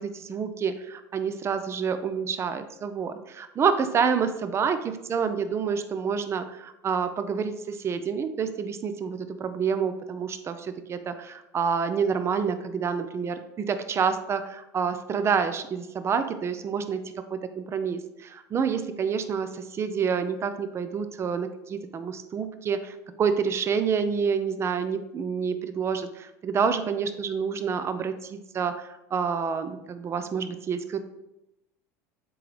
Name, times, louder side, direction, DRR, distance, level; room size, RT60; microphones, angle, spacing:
voice 1, 0.0-17.0 17.3-31.0, right 6 dB, 30° right, 10 dB, 0.6 m, -28 dB
7.6 x 3.9 x 3.2 m, 0.90 s
supercardioid pair, 100°, 9 cm